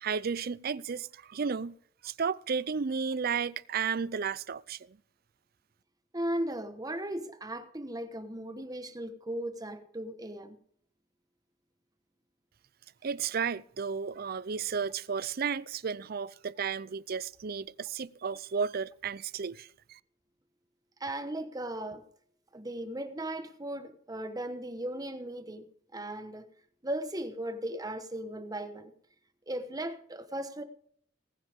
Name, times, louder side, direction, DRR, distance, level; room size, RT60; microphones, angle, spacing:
voice 1, 0.0-1.7 2.0-4.8 13.0-20.0, right 6 dB, 50° right, 0.5 m, -33 dB
voice 2, 6.1-10.6 21.0-22.1 22.5-26.5 26.8-28.9 29.5-30.6, right 1 dB, 20° right, 1.2 m, -37 dB
19.0 x 9.9 x 3.6 m
head